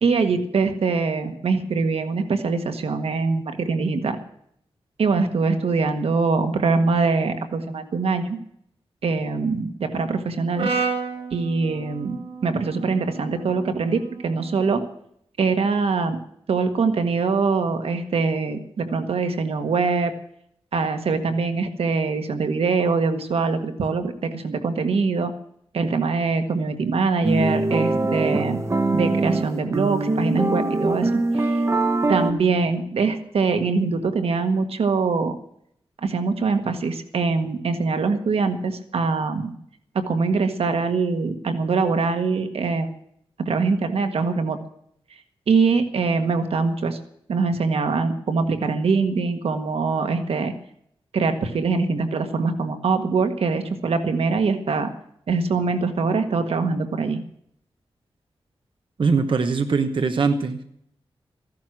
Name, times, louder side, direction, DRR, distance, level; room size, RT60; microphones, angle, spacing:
voice 1, 0.0-4.2 5.0-8.4 9.0-10.7 11.3-14.8 15.4-16.2 16.5-20.1 20.7-25.3 25.7-28.6 28.9-31.1 31.4-31.5 32.1-35.3 36.0-39.5 40.0-42.9 43.5-44.6 45.5-47.0 47.3-50.5 51.1-54.9 55.3-57.2, right 4 dB, 90° right, 8 dB, 1.6 m, -23 dB
Brass instrument, 10.6-14.8, right 4 dB, 75° right, 2.3 m, -32 dB
sound 1, 27.2-32.3, right 2 dB, 30° right, 1.1 m, -22 dB
voice 2, 59.0-60.6, right 4 dB, 60° right, 7 dB, 1.2 m, -21 dB
15.5 x 11.5 x 6.1 m, 0.70 s
wide cardioid pair, 115°, 10 cm